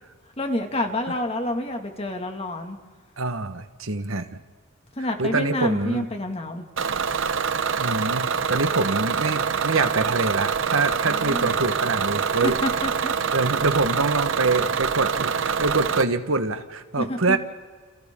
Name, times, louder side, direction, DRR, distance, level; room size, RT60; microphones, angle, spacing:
voice 1, 0.4-2.8 5.0-6.7 11.0-11.5 12.4-13.1 17.0-17.4, left 1 dB, 30° left, 4 dB, 2.2 m, -28 dB
voice 2, 3.2-4.4 5.2-6.0 7.8-12.6 13.3-17.4, right 3 dB, 80° right, 9 dB, 1.4 m, -25 dB
Bus / Engine, 6.8-16.0, right 6 dB, 65° right, 0.7 m, -25 dB
30.0 x 29.5 x 3.8 m, 1.5 s
head